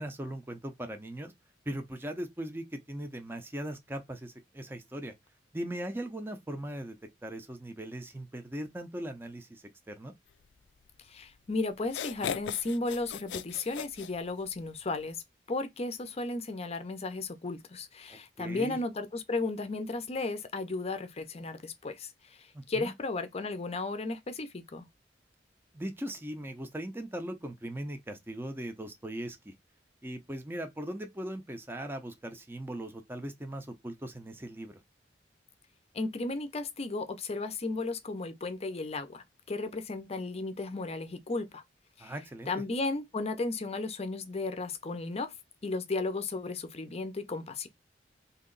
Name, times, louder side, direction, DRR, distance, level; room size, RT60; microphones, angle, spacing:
voice 1, 0.0-1.3 1.7-5.1 5.5-7.0 7.2-10.1 18.1-18.8 22.5-22.9 25.7-29.5 30.0-34.8 42.0-42.5, right 1 dB, 15° right, 0.6 m, -39 dB
voice 2, 11.1-15.2 15.5-22.4 22.7-24.9 35.9-41.6 42.0-42.1 42.5-45.3 45.6-47.7, left 3 dB, 35° left, 0.6 m, -34 dB
sound 1, 11.3-11.4 11.8-14.7, left 8 dB, 90° left, 0.4 m, -38 dB
3.1 x 2.8 x 3.8 m
head